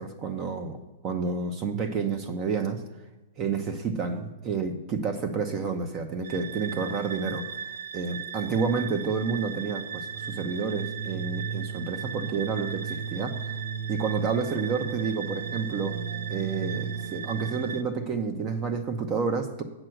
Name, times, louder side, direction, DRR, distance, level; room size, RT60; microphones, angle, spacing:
voice 1, 0.0-2.8 3.4-13.6 13.9-15.9 16.3-19.6, right 5 dB, 30° right, 7 dB, 0.7 m, -30 dB
sound 1, 6.2-17.8, right 7 dB, 70° right, 0.6 m, -35 dB
7.7 x 6.1 x 7.8 m, 1.1 s
hypercardioid pair, 155°, 0 cm